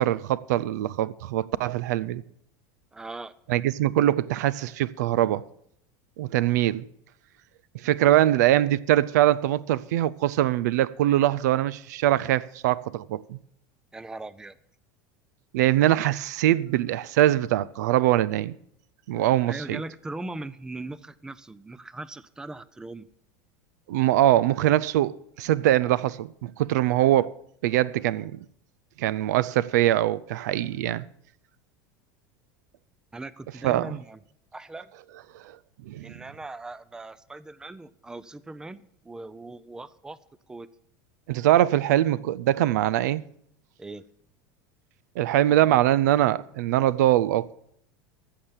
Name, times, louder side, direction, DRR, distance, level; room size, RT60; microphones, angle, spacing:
voice 1, 0.0-2.2 3.5-5.4 6.2-6.9 7.8-13.4 15.5-18.5 19.1-19.8 23.9-27.3 27.6-28.4 29.0-31.0 33.6-34.0 35.4-35.5 35.9-36.1 41.3-43.2 45.2-47.5, right 13 dB, 85° right, 0.5 m, -23 dB
voice 2, 2.9-3.3 13.9-14.5 19.5-23.1 33.1-34.2 34.5-34.9 36.0-40.2 40.5-40.7 43.8-44.1, right 2 dB, 5° right, 0.5 m, -39 dB
14.5 x 6.7 x 7.3 m
supercardioid pair, 130°, 9 cm